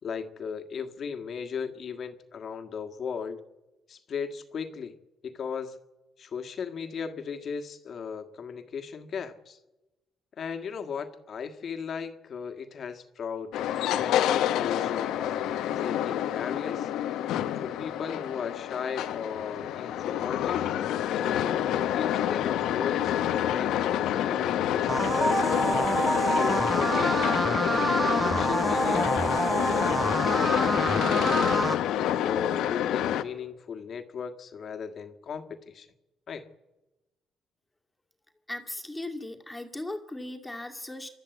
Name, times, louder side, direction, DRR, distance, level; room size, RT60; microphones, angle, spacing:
voice 1, 0.0-3.4 3.9-5.0 5.2-5.8 6.2-9.6 10.4-16.9 17.6-20.7 21.1-25.6 26.2-27.3 28.1-31.7 32.2-35.9 36.3-36.5, left 6 dB, 55° left, 7 dB, 1.7 m, -37 dB
sound 1, 13.5-33.2, left 11 dB, 90° left, 1.0 m, -27 dB
sound 2, 24.9-31.7, right 2 dB, 15° right, 1.0 m, -27 dB
voice 2, 38.5-41.1, left 1 dB, 10° left, 3 dB, 2.4 m, -37 dB
28.0 x 13.0 x 8.3 m, 1.0 s
cardioid pair, 90°, 0 cm